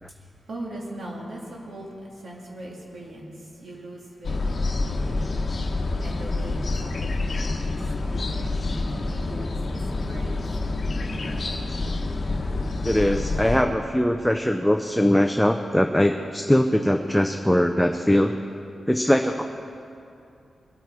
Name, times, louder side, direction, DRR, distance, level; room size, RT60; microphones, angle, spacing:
voice 1, 0.0-5.4 6.0-7.8 8.1-11.9, right 1 dB, 55° right, -3 dB, 2.4 m, -41 dB
sound 1, 4.2-13.6, left 2 dB, 40° left, 1.2 m, -27 dB
voice 2, 12.8-18.3 18.9-19.4, equal, ahead, 4 dB, 0.5 m, -21 dB
22.5 x 9.2 x 4.8 m, 2.6 s
wide cardioid pair, 160°, 0 cm